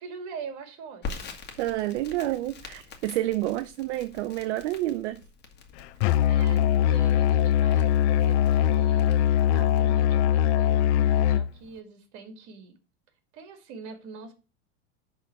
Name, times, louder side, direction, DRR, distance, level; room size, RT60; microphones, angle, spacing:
voice 1, 0.0-1.4 6.3-12.8 13.3-14.3, right 5 dB, 55° right, 2.6 m, -43 dB
Crackle, 1.0-9.8, left 4 dB, 30° left, 1.8 m, -45 dB
voice 2, 1.6-5.2, right 15 dB, 75° right, 0.7 m, -29 dB
Musical instrument, 6.0-11.5, left 10 dB, 70° left, 0.6 m, -21 dB
10.5 x 3.9 x 5.9 m
supercardioid pair, 125°, 35 cm